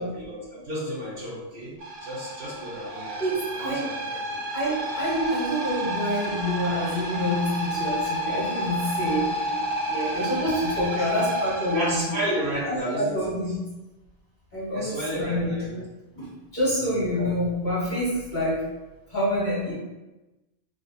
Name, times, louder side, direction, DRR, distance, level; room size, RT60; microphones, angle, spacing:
voice 1, 0.0-4.0 10.9-11.1 11.7-13.2 14.7-15.8 17.1-17.3, equal, 60° right, -6 dB, 0.9 m, -32 dB
sound 1, 1.8-12.6, right 1 dB, 80° right, 1.0 m, -30 dB
voice 2, 3.2-3.9 4.5-9.6 9.9-12.1 12.6-13.6 14.5-15.5 16.1-16.3 16.5-18.6 19.1-19.7, equal, 45° left, -10 dB, 1.7 m, -27 dB
3.7 x 2.3 x 2.6 m, 1.1 s
omnidirectional pair, 1.2 m